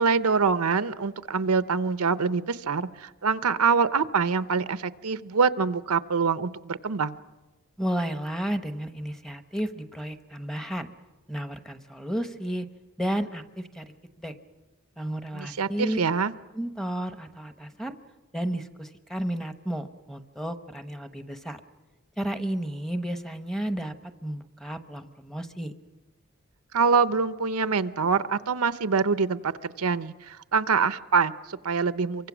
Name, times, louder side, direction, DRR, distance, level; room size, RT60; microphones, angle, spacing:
voice 1, 0.0-7.2 15.3-16.3 26.7-32.3, right 5 dB, 85° right, 13 dB, 0.8 m, -25 dB
voice 2, 7.8-10.9 11.3-12.7 13.0-14.3 15.0-16.0 16.5-17.9 18.3-21.6 22.2-23.9 24.2-25.7, right 1 dB, ahead, 8 dB, 0.9 m, -32 dB
28.0 x 24.0 x 6.2 m, 1.1 s
head